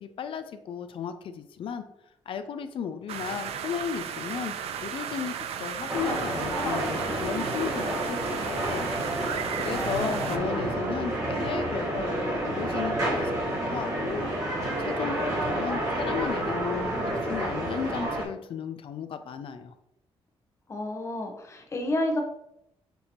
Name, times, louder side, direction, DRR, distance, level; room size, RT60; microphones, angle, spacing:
voice 1, 0.0-1.8 2.3-4.6 4.8-8.9 9.5-14.3 14.8-19.7, left 7 dB, 60° left, 10 dB, 0.4 m, -35 dB
sound 1, 3.1-10.4, right 8 dB, 90° right, 0.4 m, -35 dB
sound 2, 5.9-18.2, right 1 dB, 35° right, 1.3 m, -29 dB
voice 2, 9.7-10.3 20.7-22.2, left 1 dB, 30° left, 3 dB, 0.8 m, -30 dB
6.8 x 2.7 x 2.9 m, 0.80 s
cardioid pair, 135°, 10 cm